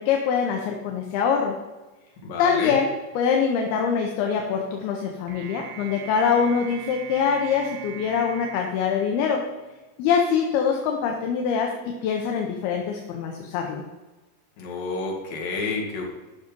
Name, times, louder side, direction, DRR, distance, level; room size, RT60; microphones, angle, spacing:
voice 1, 0.0-1.6 2.4-9.4 10.0-11.7 12.0-13.9, left 6 dB, 75° left, 2 dB, 2.6 m, -24 dB
voice 2, 2.2-2.8 14.6-16.1, left 3 dB, 60° left, -1 dB, 3.4 m, -29 dB
sound 1, 5.3-9.8, right 10 dB, 75° right, 3.7 m, -41 dB
12.0 x 6.1 x 5.3 m, 1.1 s
omnidirectional pair, 5.0 m